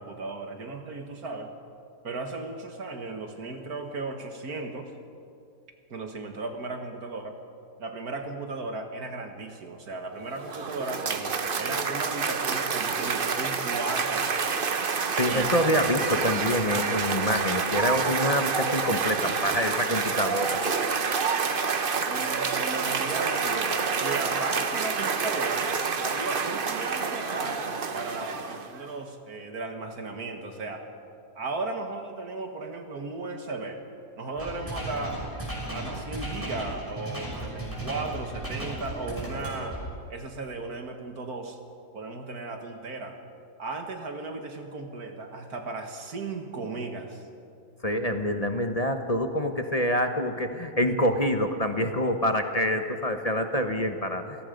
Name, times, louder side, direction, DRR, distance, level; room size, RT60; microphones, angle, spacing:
voice 1, 0.0-1.5 2.0-4.9 5.9-7.4 7.8-14.8 15.3-15.5 22.1-25.7 26.0-30.8 31.4-33.8 34.2-35.2 35.7-39.8 40.1-41.6 41.9-43.2 43.6-47.2, right 3 dB, 60° right, 5 dB, 2.0 m, -36 dB
Cheering / Applause, 10.2-28.9, right 5 dB, 40° right, 0.9 m, -28 dB
voice 2, 15.1-20.6 47.8-54.4, left 1 dB, 25° left, 6 dB, 0.9 m, -26 dB
sound 1, 34.4-39.8, right 1 dB, 10° right, 6.3 m, -35 dB
27.5 x 18.0 x 5.2 m, 2.4 s
omnidirectional pair, 1.8 m